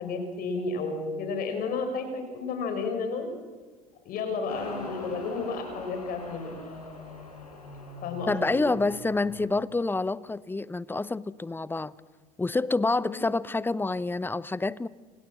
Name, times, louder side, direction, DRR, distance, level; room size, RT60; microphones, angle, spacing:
voice 1, 0.0-3.3 4.1-6.5 8.0-8.6 13.0-13.2, left 4 dB, 50° left, 5.8 m, -32 dB
Motorcycle, 4.5-9.5, left 2 dB, 85° left, 5.0 m, -41 dB
voice 2, 8.3-11.9 12.4-14.9, left 3 dB, 10° left, 0.8 m, -28 dB
29.0 x 26.5 x 7.6 m
figure-of-eight pair, 65°, 19 cm